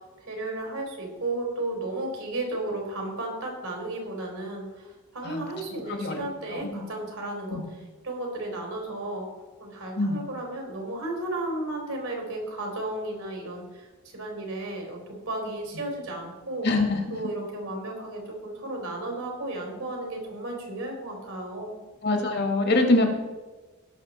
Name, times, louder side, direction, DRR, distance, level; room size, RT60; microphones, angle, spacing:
voice 1, 0.2-7.6 8.0-9.3 9.6-16.7 17.1-21.7, right 2 dB, 70° right, 1 dB, 3.4 m, -34 dB
voice 2, 6.5-6.8 7.5-7.6 10.0-10.2 16.6-17.0 22.0-23.1, left 2 dB, 50° left, 4 dB, 1.8 m, -24 dB
18.0 x 6.6 x 4.2 m, 1.2 s
head